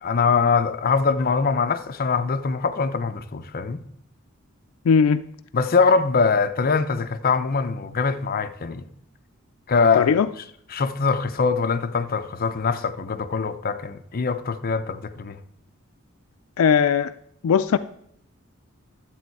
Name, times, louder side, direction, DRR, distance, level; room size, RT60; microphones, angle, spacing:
voice 1, 0.0-3.8 5.5-8.9 9.7-10.2 10.7-15.4, left 5 dB, 45° left, 0.6 m, -23 dB
voice 2, 4.9-5.2 9.9-10.3 16.6-17.1 17.4-17.8, left 6 dB, 90° left, 0.4 m, -18 dB
11.0 x 7.9 x 4.6 m
head